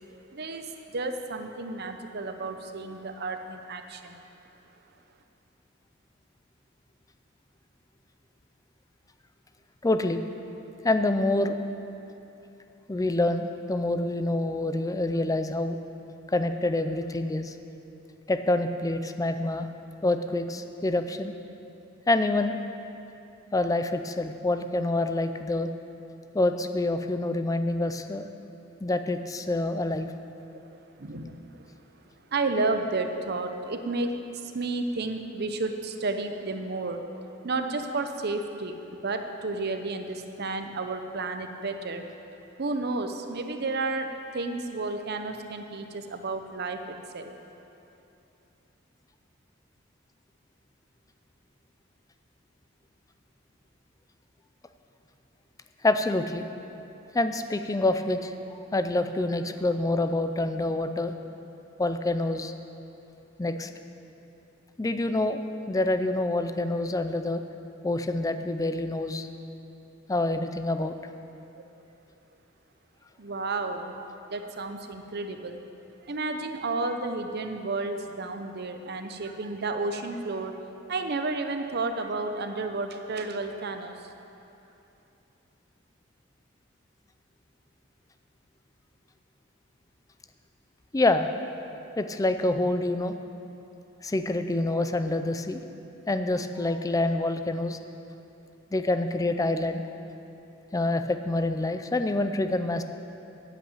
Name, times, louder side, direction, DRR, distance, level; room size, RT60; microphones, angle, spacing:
voice 1, 0.3-4.2 31.0-31.7 32.3-37.0 37.4-42.0 42.6-47.3 73.2-73.9 74.3-75.6 76.0-80.6 80.9-84.0, right 3 dB, 55° right, 6 dB, 0.8 m, -32 dB
voice 2, 9.8-10.2 10.8-11.6 12.9-15.8 16.3-17.5 18.3-19.7 20.0-21.3 22.1-22.6 23.5-25.7 26.3-28.3 28.8-30.1 55.8-56.4 57.1-61.1 61.8-62.5 63.4-63.7 64.8-67.4 67.8-69.3 70.1-71.0 90.9-91.3 92.0-93.1 94.0-95.6 96.1-97.8 98.7-99.8 100.7-102.8, left 2 dB, 15° left, 8 dB, 0.4 m, -26 dB
8.8 x 7.8 x 8.5 m, 2.9 s
head